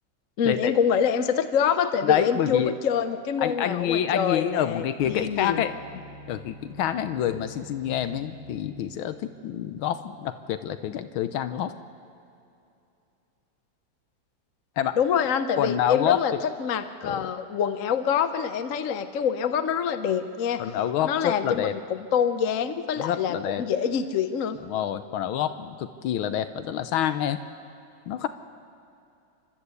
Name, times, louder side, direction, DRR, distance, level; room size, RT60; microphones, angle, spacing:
voice 1, 0.4-5.6 15.0-16.3 16.6-20.7 21.0-24.6, left 7 dB, 60° left, 10 dB, 0.9 m, -26 dB
voice 2, 2.0-2.7 3.4-5.7 6.3-11.7 14.8-15.0 15.6-16.4 17.0-17.2 20.6-21.7 23.0-23.6 24.7-27.4 28.1-28.3, left 10 dB, 85° left, 11 dB, 1.6 m, -27 dB
sound 1, 5.0-9.4, left 1 dB, 25° left, 2.7 m, -46 dB
29.0 x 13.5 x 8.3 m, 2.6 s
omnidirectional pair, 2.2 m